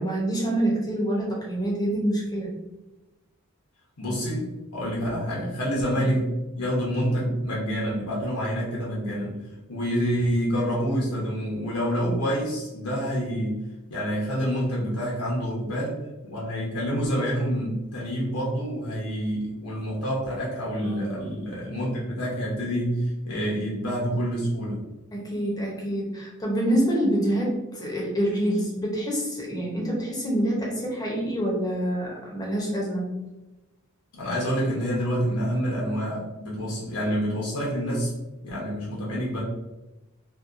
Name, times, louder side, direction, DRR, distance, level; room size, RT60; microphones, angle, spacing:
voice 1, 0.0-2.5 20.8-21.3 25.1-33.1, right 1 dB, 15° left, -3 dB, 0.6 m, -26 dB
voice 2, 4.0-9.3 9.7-13.6 13.9-24.8 34.2-38.1 38.4-39.4, equal, 90° left, -5 dB, 0.8 m, -27 dB
2.7 x 2.2 x 2.4 m, 1.0 s
head